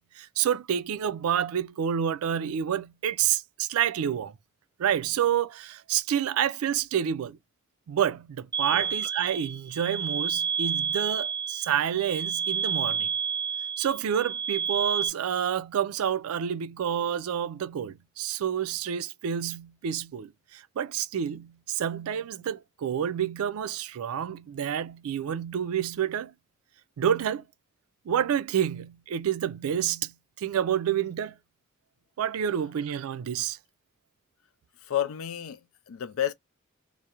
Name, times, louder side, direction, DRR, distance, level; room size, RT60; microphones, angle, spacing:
voice 1, 0.2-4.3 4.8-7.4 7.9-13.1 13.8-26.3 27.0-27.4 28.1-31.4 32.2-33.6, right 9 dB, 85° right, 0.3 m, -28 dB
sound 1, 8.5-15.1, right 7 dB, 20° right, 0.5 m, -30 dB
voice 2, 34.8-36.3, left 10 dB, 75° left, 0.4 m, -31 dB
2.4 x 2.0 x 2.8 m
head